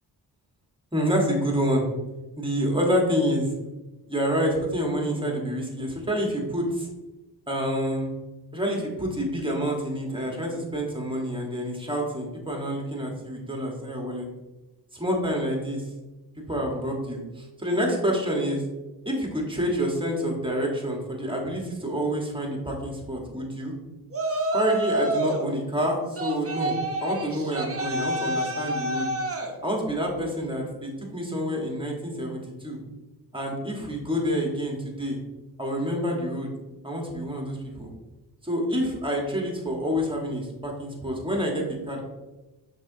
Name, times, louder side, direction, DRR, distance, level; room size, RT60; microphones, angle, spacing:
voice 1, 0.9-1.9 2.4-3.5 4.1-6.9 7.5-8.1 8.5-14.3 14.9-15.8 16.5-18.6 19.0-23.7 24.5-29.1 29.6-32.8 33.3-35.2 35.6-36.5 36.8-37.9 38.4-42.0, equal, 10° right, 0 dB, 1.3 m, -28 dB
Yell, 24.1-25.5 26.1-29.5, right 1 dB, 35° right, 0.7 m, -28 dB
6.0 x 3.0 x 2.7 m, 1.1 s
cardioid pair, 50°, 42 cm